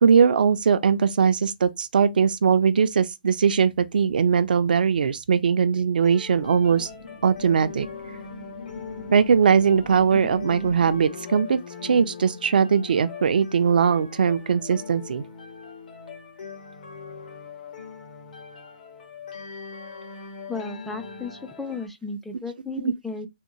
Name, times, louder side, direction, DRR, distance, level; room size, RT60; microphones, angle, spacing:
voice 1, 0.0-6.9 7.2-7.9 9.1-15.2 22.8-22.9, right 6 dB, 70° right, 0.4 m, -20 dB
sound 1, 6.0-21.9, left 5 dB, 60° left, 1.1 m, -41 dB
sound 2, 6.2-11.3, left 2 dB, 75° left, 1.3 m, -41 dB
voice 2, 20.5-23.3, left 3 dB, 5° left, 0.4 m, -34 dB
3.5 x 2.1 x 3.0 m
hypercardioid pair, 140°, 5 cm